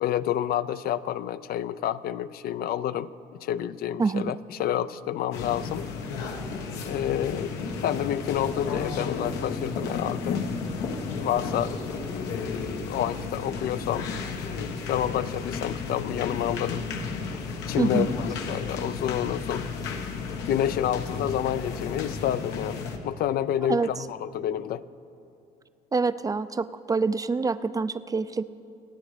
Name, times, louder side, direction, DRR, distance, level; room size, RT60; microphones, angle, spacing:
voice 1, 0.0-3.1 3.4-5.9 6.8-10.4 11.2-11.7 12.1-14.1 14.4-16.9 17.7-19.7 20.5-24.8, left 11 dB, 65° left, 15 dB, 0.5 m, -29 dB
voice 2, 4.0-4.3 17.8-18.1 23.7-24.0 25.9-28.4, right 4 dB, 20° right, 13 dB, 0.4 m, -26 dB
sound 1, 5.3-23.0, left 4 dB, 90° left, 1.4 m, -33 dB
26.5 x 9.1 x 5.0 m, 2.6 s
cardioid pair, 110°, 17 cm